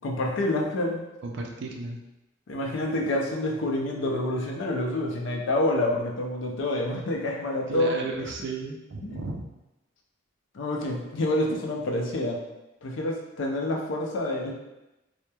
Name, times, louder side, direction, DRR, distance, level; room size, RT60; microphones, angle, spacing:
voice 1, 0.0-1.0 2.5-8.1 9.0-9.2 10.5-12.4 12.8-14.5, left 1 dB, 65° left, 0 dB, 0.4 m, -27 dB
voice 2, 1.2-2.0 7.7-9.5, right 3 dB, 60° right, 2 dB, 0.4 m, -34 dB
2.9 x 2.1 x 2.2 m, 0.96 s
head